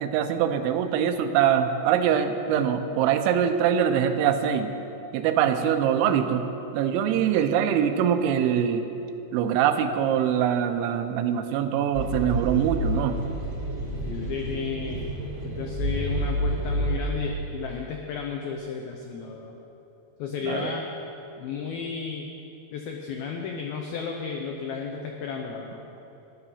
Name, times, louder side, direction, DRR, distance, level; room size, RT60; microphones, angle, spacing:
voice 1, 0.0-4.7 5.1-6.4 6.7-8.8 9.3-13.2 20.4-20.7, right 9 dB, 85° right, 8 dB, 3.0 m, -23 dB
sound 1, 11.9-16.9, right 1 dB, 40° right, 1.0 m, -29 dB
voice 2, 14.0-15.1 15.4-19.6 20.2-20.9 21.4-22.3 22.7-25.8, left 5 dB, 85° left, 2 dB, 2.1 m, -33 dB
12.5 x 10.5 x 5.6 m, 3.0 s
omnidirectional pair, 5.4 m